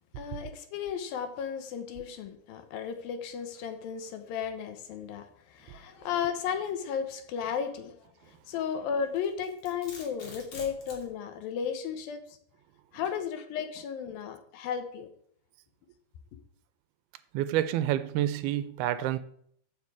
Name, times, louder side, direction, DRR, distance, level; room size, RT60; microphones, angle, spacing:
voice 1, 0.2-8.0 8.3-12.4 12.9-15.1, left 7 dB, 70° left, 2.6 m, -34 dB
Domestic sounds home sounds, 9.2-11.1, left 3 dB, 50° left, 3.8 m, -46 dB
voice 2, 17.3-19.2, right 12 dB, 85° right, 2.5 m, -28 dB
14.5 x 7.2 x 4.8 m
omnidirectional pair, 4.5 m